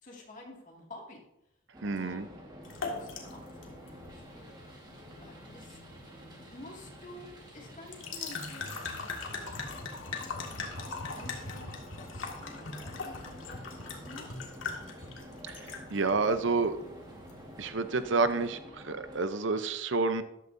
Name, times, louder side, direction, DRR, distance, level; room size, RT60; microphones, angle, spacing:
voice 1, 0.0-1.2 1.9-4.6 5.2-5.8 6.2-9.6 10.6-14.3, left 1 dB, 40° left, -1 dB, 2.2 m, -51 dB
sound 1, 1.7-19.3, equal, 20° right, 1.6 m, -50 dB
voice 2, 1.8-2.3 15.5-16.8 17.6-20.2, right 3 dB, 65° right, 10 dB, 0.7 m, -29 dB
sound 2, 2.6-17.7, left 4 dB, 75° left, 1.9 m, -42 dB
13.5 x 11.5 x 2.7 m, 0.86 s
head